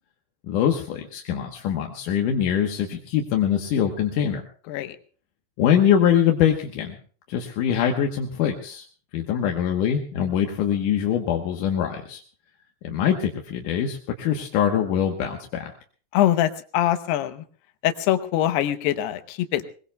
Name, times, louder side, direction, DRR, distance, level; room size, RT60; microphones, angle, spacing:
voice 1, 0.5-4.4 5.6-7.0 7.3-8.8 9.1-12.2 12.8-15.7, left 9 dB, 70° left, 2 dB, 2.3 m, -23 dB
voice 2, 16.1-17.4 17.8-19.7, left 12 dB, 85° left, 10 dB, 2.9 m, -23 dB
22.0 x 21.5 x 2.3 m, 0.42 s
omnidirectional pair, 4.7 m